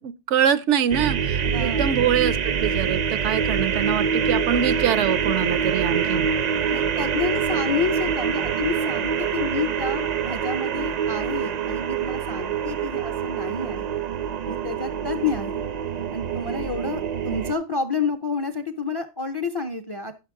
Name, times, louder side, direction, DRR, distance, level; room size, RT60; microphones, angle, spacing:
voice 1, 0.0-6.3, right 9 dB, 85° right, 0.9 m, -24 dB
sound 1, 0.9-17.5, right 7 dB, 55° right, 0.5 m, -25 dB
voice 2, 1.4-1.9 6.7-13.9 14.5-15.7 16.1-20.2, left 4 dB, 35° left, 0.4 m, -29 dB
9.9 x 6.4 x 3.6 m
omnidirectional pair, 1.2 m